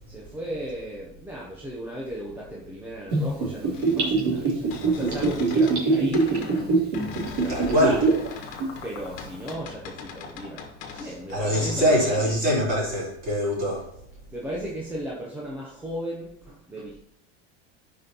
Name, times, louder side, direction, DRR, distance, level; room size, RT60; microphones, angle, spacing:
voice 1, 0.1-6.6 7.2-8.0 8.4-12.4 14.3-17.0, equal, 5° right, -4 dB, 0.6 m, -36 dB
Gurgling / Bathtub (filling or washing), 3.1-8.3 8.6-8.7, right 3 dB, 50° right, 2.8 m, -23 dB
sound 1, 3.7-5.8 6.1-11.8, left 5 dB, 55° left, 1.4 m, -40 dB
voice 2, 7.5-8.0 10.9-13.9, equal, 25° right, -6 dB, 3.6 m, -24 dB
13.0 x 5.3 x 2.9 m, 0.75 s
supercardioid pair, 170°, 36 cm